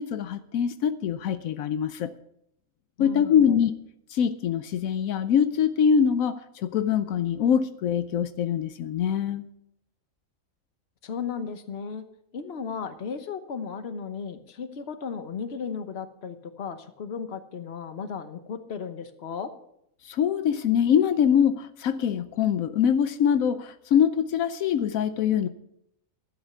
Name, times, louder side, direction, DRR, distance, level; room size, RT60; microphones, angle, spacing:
voice 1, 0.0-2.1 3.0-3.7 4.1-9.5 20.1-25.5, left 8 dB, 85° left, 12 dB, 1.1 m, -24 dB
voice 2, 3.0-3.6 11.0-12.0 12.3-19.5, left 6 dB, 50° left, 10 dB, 1.2 m, -35 dB
12.5 x 9.0 x 6.9 m, 0.76 s
omnidirectional pair, 1.4 m